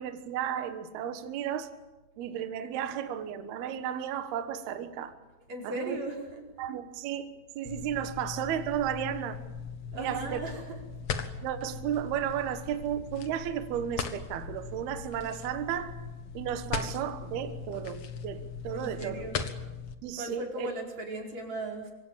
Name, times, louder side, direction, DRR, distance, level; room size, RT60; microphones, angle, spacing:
voice 1, 0.0-1.7 2.2-5.1 5.6-6.0 6.6-9.4 9.9-10.4 11.4-16.0 16.3-19.3 20.0-20.7, right 10 dB, 65° right, 8 dB, 3.0 m, -34 dB
voice 2, 5.5-6.4 9.9-10.8 18.7-19.4 20.2-21.9, right 2 dB, 35° right, 0 dB, 5.9 m, -37 dB
sound 1, 7.6-19.9, left 6 dB, 70° left, 1.4 m, -39 dB
26.0 x 25.5 x 7.5 m, 1.1 s
omnidirectional pair, 5.4 m